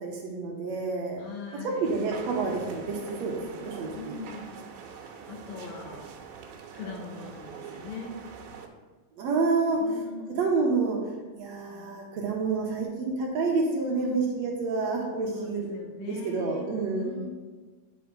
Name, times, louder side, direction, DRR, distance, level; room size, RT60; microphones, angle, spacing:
voice 1, 0.0-1.2 1.8-4.1 9.2-9.8 10.4-11.0 11.3-15.7 16.0-17.2, right 4 dB, 70° right, -1 dB, 1.7 m, -28 dB
voice 2, 1.2-2.0 4.0-4.5 4.9-6.1 6.7-8.1 9.8-10.4 11.7-11.9 13.9-14.2 15.3-16.7 17.0-17.3, left 3 dB, 75° left, 1 dB, 2.7 m, -41 dB
sound 1, 1.8-8.7, right 6 dB, 90° right, 2.6 m, -44 dB
9.4 x 5.8 x 3.8 m, 1.3 s
omnidirectional pair, 4.1 m